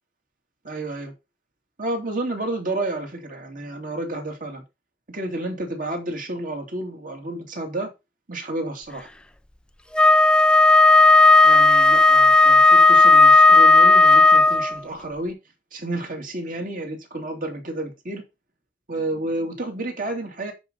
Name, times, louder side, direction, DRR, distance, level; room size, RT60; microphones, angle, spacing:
voice 1, 0.6-1.1 1.8-4.6 5.1-7.9 8.3-9.1 11.4-15.4 15.7-18.2 18.9-20.5, right 1 dB, 45° right, 2.8 m, -30 dB
Wind instrument woodwind instrument, 9.9-14.8, left 3 dB, 5° left, 0.5 m, -13 dB
11.0 x 5.5 x 4.0 m
head